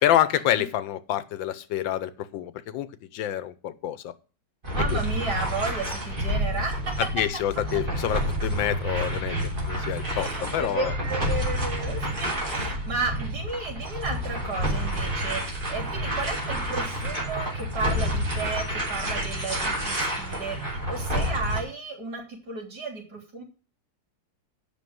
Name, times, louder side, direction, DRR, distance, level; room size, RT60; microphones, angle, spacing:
voice 1, 0.0-2.9 3.1-4.1 4.9-5.0 7.0-9.4 9.7-10.9, left 11 dB, 85° left, 15 dB, 1.5 m, -27 dB
sound 1, 4.6-21.6, equal, 25° right, 3.2 m, -29 dB
voice 2, 4.7-7.1 7.7-7.8 10.1-23.4, right 3 dB, 55° right, -3 dB, 3.9 m, -33 dB
8.8 x 6.0 x 7.7 m, 0.36 s
omnidirectional pair, 2.0 m